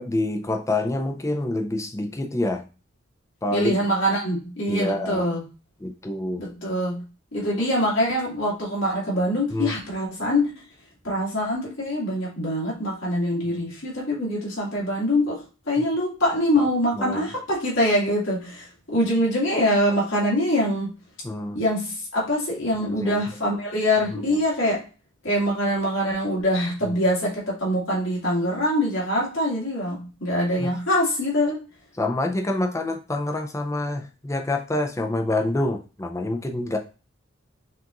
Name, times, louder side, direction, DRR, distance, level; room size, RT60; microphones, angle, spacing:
voice 1, 0.0-2.7 3.4-3.8 4.7-5.3 5.8-6.4 7.6-7.7 9.5-9.8 13.5-13.6 15.8-15.9 16.6-16.7 17.0-17.3 21.2-21.6 22.8-23.3 24.1-24.2 26.8-27.0 30.6-30.7 31.9-36.8, left 1 dB, 15° left, 4 dB, 0.5 m, -27 dB
voice 2, 3.5-5.4 6.4-7.0 7.3-10.5 11.0-20.9 21.5-24.8 25.2-31.6, equal, 70° left, -5 dB, 2.2 m, -24 dB
5.9 x 2.5 x 2.9 m, 0.33 s
head